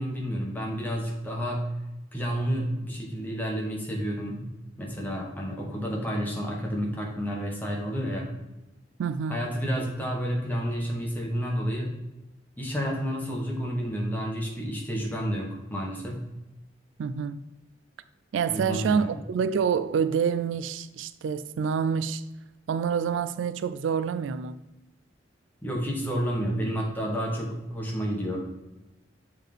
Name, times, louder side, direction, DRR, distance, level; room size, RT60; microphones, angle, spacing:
voice 1, 0.0-1.6 2.1-4.5 4.8-8.3 9.3-11.9 12.6-16.2 18.5-19.1 25.6-28.4, equal, 10° left, 1.2 m, -30 dB
voice 2, 9.0-9.5 17.0-17.4 18.3-22.2 22.7-24.6, right 6 dB, 85° right, 0.3 m, -27 dB
7.2 x 3.7 x 3.6 m
head